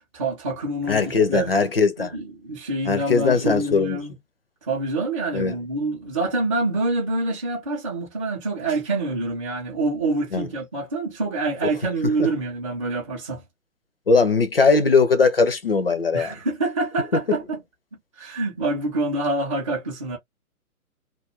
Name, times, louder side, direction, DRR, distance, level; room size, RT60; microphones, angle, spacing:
voice 1, 0.0-1.5 2.0-4.1 4.6-13.4 16.1-17.6 18.2-20.2, right 2 dB, 25° right, 0.5 m, -26 dB
voice 2, 0.9-2.2 2.9-4.0 5.3-5.6 10.3-10.5 12.2-12.3 14.1-16.3 17.3-17.4, left 4 dB, 45° left, 0.4 m, -20 dB
2.3 x 2.2 x 2.8 m
figure-of-eight pair, 130°, 45 cm